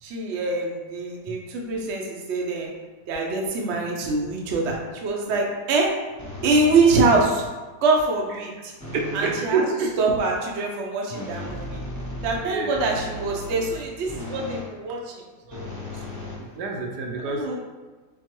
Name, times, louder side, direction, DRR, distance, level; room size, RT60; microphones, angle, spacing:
voice 1, 0.0-2.7 3.1-5.9 6.4-7.4 7.8-8.7 9.1-9.6 10.0-11.8 12.2-15.7 17.3-17.6, right 3 dB, 55° right, -1 dB, 0.8 m, -24 dB
sound 1, 6.2-7.4 8.8-9.5 11.1-14.7 15.5-17.0, left 1 dB, 15° left, 0.6 m, -36 dB
voice 2, 8.9-9.9 12.4-12.8 16.6-17.4, right 4 dB, 75° right, 0 dB, 1.2 m, -27 dB
4.4 x 4.0 x 3.0 m, 1.3 s
omnidirectional pair, 1.9 m